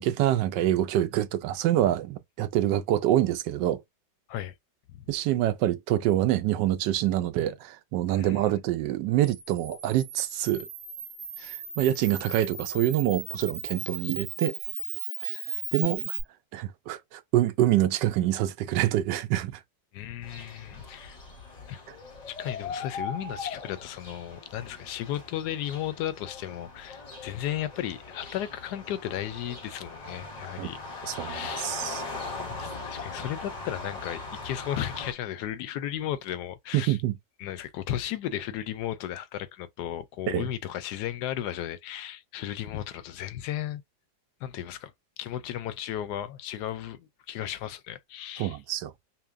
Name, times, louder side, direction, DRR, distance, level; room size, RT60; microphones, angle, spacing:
voice 1, 0.0-3.8 5.1-10.7 11.4-14.6 15.2-15.4 15.7-16.2 16.5-19.6 30.6-30.7 31.1-32.0 36.7-37.1 40.3-40.5 48.4-48.9, right 13 dB, 85° right, 1.2 m, -26 dB
Camera, 9.2-16.2, right 5 dB, 65° right, 1.7 m, -36 dB
voice 2, 19.9-21.2 21.7-21.8 22.3-31.7 32.5-37.0 37.4-43.8 44.4-44.9 45.2-48.6, left 11 dB, 75° left, 1.1 m, -35 dB
sound 1, 20.2-35.1, left 3 dB, 35° left, 0.7 m, -40 dB
5.7 x 2.2 x 2.5 m
omnidirectional pair, 1.8 m